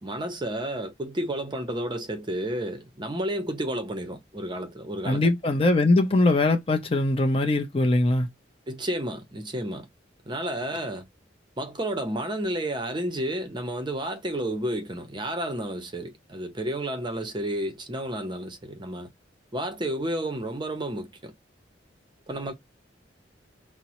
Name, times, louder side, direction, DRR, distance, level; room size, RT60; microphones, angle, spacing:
voice 1, 0.0-5.3 8.7-9.9 10.3-11.1 11.6-19.1 19.5-21.3 22.3-22.5, right 1 dB, 25° right, 0.6 m, -31 dB
voice 2, 5.1-8.3, left 2 dB, 30° left, 0.5 m, -21 dB
5.0 x 2.0 x 2.9 m
head